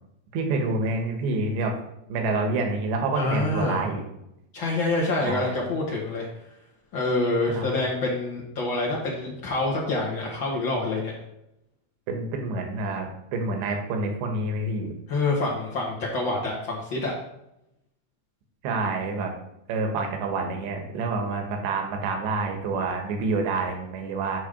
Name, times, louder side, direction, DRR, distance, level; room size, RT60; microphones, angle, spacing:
voice 1, 0.3-1.7 2.1-4.0 5.2-5.6 7.6-7.8 12.1-14.9 18.6-19.3 19.7-24.4, right 3 dB, 85° right, 3 dB, 3.6 m, -27 dB
voice 2, 3.1-3.8 4.5-6.3 6.9-11.1 15.1-17.1, left 2 dB, 80° left, -4 dB, 1.0 m, -26 dB
10.0 x 3.8 x 6.7 m, 0.84 s
omnidirectional pair, 4.9 m